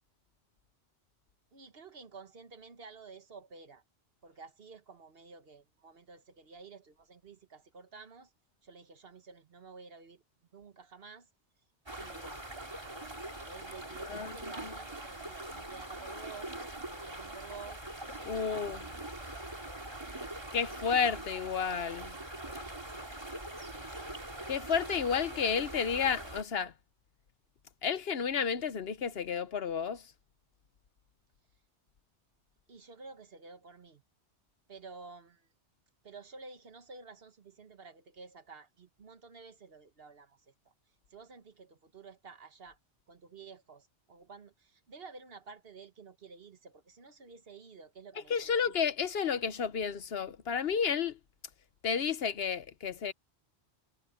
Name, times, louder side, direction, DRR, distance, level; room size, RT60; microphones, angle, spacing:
voice 1, 1.5-3.8 4.2-8.3 8.6-10.2 10.5-11.3 12.0-12.5 12.7-13.0 13.4-17.8 18.4-18.8 23.9-24.2 32.7-34.0 34.7-35.5 36.0-40.7 41.1-42.8 43.1-48.8, right 4 dB, 55° right, 1.5 m, -51 dB
sound 1, 11.9-26.4, right 1 dB, 25° right, 2.2 m, -43 dB
voice 2, 18.3-18.9 20.5-22.2 24.5-26.7 27.8-30.1 48.3-51.2 51.8-53.1, left 6 dB, 60° left, 1.0 m, -31 dB
omnidirectional pair, 1.2 m